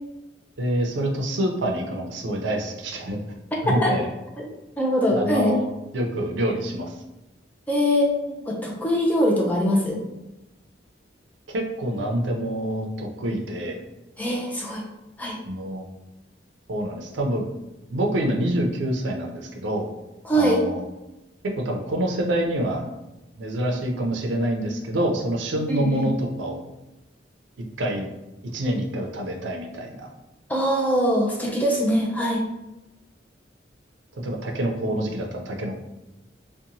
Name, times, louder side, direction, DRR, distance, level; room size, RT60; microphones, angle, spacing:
voice 1, 0.6-3.2 3.6-4.1 5.1-5.7 5.9-6.9 11.5-13.8 15.5-15.8 16.7-17.4 17.9-19.9 20.3-20.8 21.6-22.9 23.4-26.6 27.8-28.1 28.5-30.1 34.2-35.8, right 1 dB, 80° right, 2 dB, 0.5 m, -26 dB
voice 2, 4.8-5.6 7.7-10.0 14.2-14.8 15.2-15.4 20.2-20.6 25.7-26.1 30.5-32.4, equal, 10° left, -2 dB, 0.4 m, -22 dB
2.8 x 2.1 x 2.6 m, 0.98 s
head